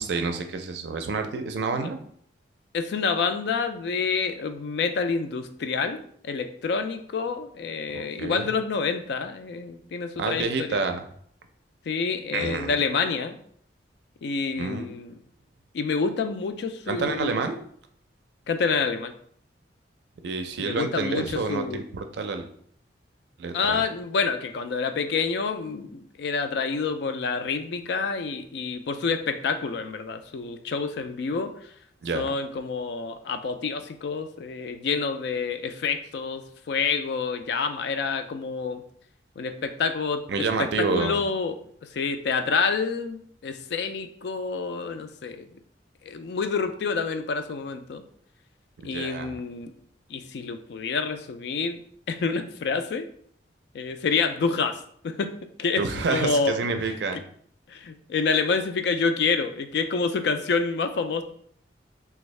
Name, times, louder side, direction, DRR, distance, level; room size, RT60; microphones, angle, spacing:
voice 1, 0.0-2.0 7.9-8.5 10.2-11.0 12.3-12.8 14.6-14.9 16.9-17.6 20.2-22.5 23.4-23.8 32.0-32.3 40.3-41.2 48.9-49.3 55.8-57.2, right 4 dB, 65° right, 6 dB, 0.4 m, -28 dB
voice 2, 2.7-10.8 11.9-13.4 14.2-15.2 15.7-17.4 18.5-19.1 20.6-21.8 23.5-31.7 32.1-38.8 39.4-41.6 41.8-45.5 46.0-48.0 48.8-49.7 50.1-51.8 52.1-53.1 53.7-55.3 55.6-55.8 56.1-56.5 56.9-57.2 57.7-61.2, left 5 dB, 65° left, 9 dB, 0.3 m, -28 dB
3.4 x 2.3 x 3.1 m, 0.62 s
head